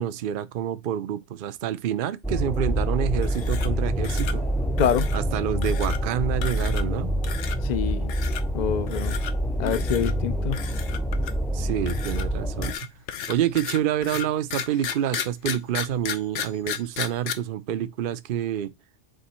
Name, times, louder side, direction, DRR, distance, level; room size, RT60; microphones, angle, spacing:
voice 1, 0.0-4.4 5.1-7.1 11.5-12.7 13.3-18.7, right 10 dB, 60° right, 0.7 m, -28 dB
sound 1, 2.2-12.7, equal, ahead, 0.6 m, -26 dB
sound 2, 3.2-3.8 4.0-4.4 4.8-5.2 5.6-6.0 6.4-7.0 7.2-7.6 8.1-8.4 8.9-9.3 9.7-10.1 10.5-11.5 11.9-17.3, left 8 dB, 75° left, 1.1 m, -34 dB
voice 2, 4.8-5.1 7.6-8.1 8.5-9.2 9.6-10.6, left 8 dB, 45° left, 0.7 m, -26 dB
7.8 x 3.5 x 4.3 m
omnidirectional pair, 1.2 m